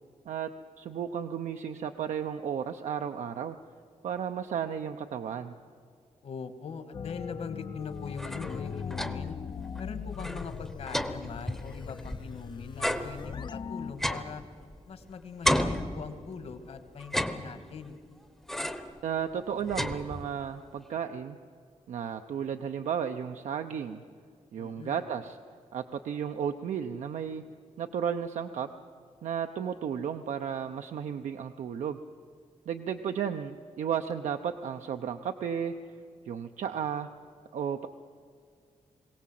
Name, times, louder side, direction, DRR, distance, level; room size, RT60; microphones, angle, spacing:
voice 1, 0.8-3.6 4.0-5.5 19.0-21.4 21.9-24.0 24.5-25.4 25.7-27.4 27.8-28.7 29.2-32.0 32.7-35.7 36.3-37.1 37.5-37.9, right 8 dB, 80° right, 6 dB, 0.7 m, -33 dB
voice 2, 6.2-9.4 9.8-14.4 14.9-18.0 24.6-25.0, left 5 dB, 60° left, 9 dB, 1.5 m, -41 dB
sound 1, 6.9-13.9, left 6 dB, 40° left, 0.5 m, -40 dB
sound 2, 8.0-9.4 9.8-9.9 10.1-12.4 12.8-15.0 15.4-16.5 17.0-17.9 18.5-19.0 19.3-20.5, equal, 5° left, 0.8 m, -33 dB
22.0 x 17.0 x 7.6 m, 2.2 s
wide cardioid pair, 175°, 12 cm